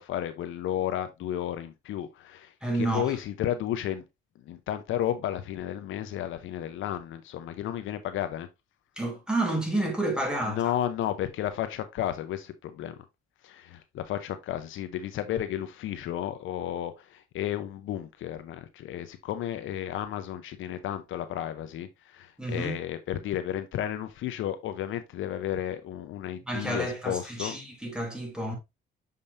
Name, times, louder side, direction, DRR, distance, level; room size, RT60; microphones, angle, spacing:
voice 1, 0.0-2.5 2.9-4.0 4.4-8.5 10.4-12.9 13.4-27.6, left 11 dB, 80° left, 0.8 m, -33 dB
voice 2, 2.6-3.1 9.0-10.7 22.4-22.8 26.5-28.6, right 1 dB, 5° right, 2.6 m, -30 dB
6.7 x 5.3 x 2.6 m
cardioid pair, 90°, 20 cm